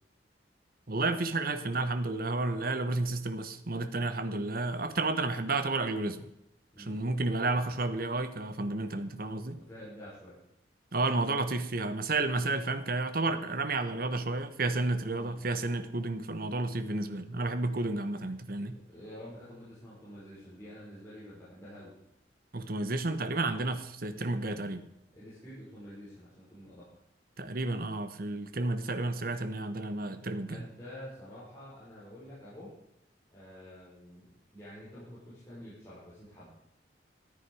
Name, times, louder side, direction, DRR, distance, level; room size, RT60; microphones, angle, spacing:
voice 1, 0.9-6.3 6.8-9.6 10.9-18.8 22.5-24.9 27.4-30.6, right 2 dB, 50° right, 10 dB, 1.1 m, -31 dB
voice 2, 6.7-7.1 9.6-10.3 15.1-15.5 18.9-21.9 25.1-26.9 30.4-32.7 33.3-34.3 34.5-36.5, equal, 15° left, -11 dB, 5.7 m, -48 dB
14.0 x 9.9 x 4.9 m, 0.80 s
head